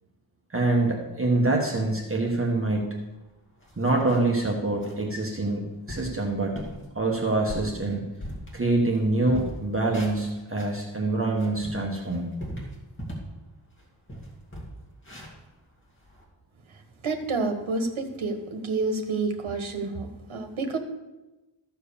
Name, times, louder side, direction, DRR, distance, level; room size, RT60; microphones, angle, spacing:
voice 1, 0.5-3.0 3.8-6.5 6.9-8.0 8.5-12.3, right 2 dB, 25° right, -1 dB, 1.2 m, -25 dB
sound 1, 3.1-3.2 3.6-4.4 4.8-5.0 5.5-5.6 5.9-6.2 6.6-6.8 7.3-9.0 9.2-10.8 11.2-13.4 13.7-13.8 14.1-16.2, equal, 25° left, 2.5 m, -39 dB
voice 2, 16.7-20.8, right 3 dB, 80° right, 6 dB, 1.5 m, -29 dB
13.5 x 4.7 x 6.9 m, 1.1 s
wide cardioid pair, 150°, 48 cm